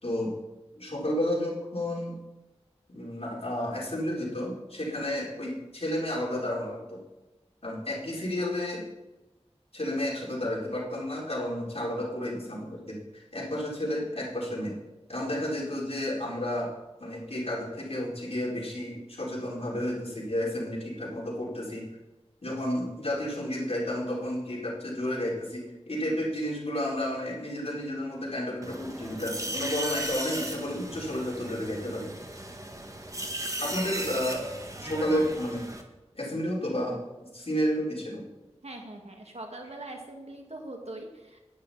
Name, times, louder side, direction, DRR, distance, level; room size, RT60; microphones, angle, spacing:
voice 1, 0.8-2.1 2.9-7.0 7.6-8.8 9.7-14.7 15.1-16.7 17.0-21.8 22.4-32.1 33.6-34.4 34.8-35.6 36.1-37.0 37.3-38.2, left 1 dB, 65° left, -5 dB, 4.1 m, -31 dB
sound 1, 28.6-35.8, right 1 dB, 30° right, 1.4 m, -36 dB
voice 2, 38.6-41.4, right 2 dB, 70° right, 2 dB, 2.1 m, -42 dB
11.5 x 10.5 x 4.3 m, 1.1 s
wide cardioid pair, 45°, 11 cm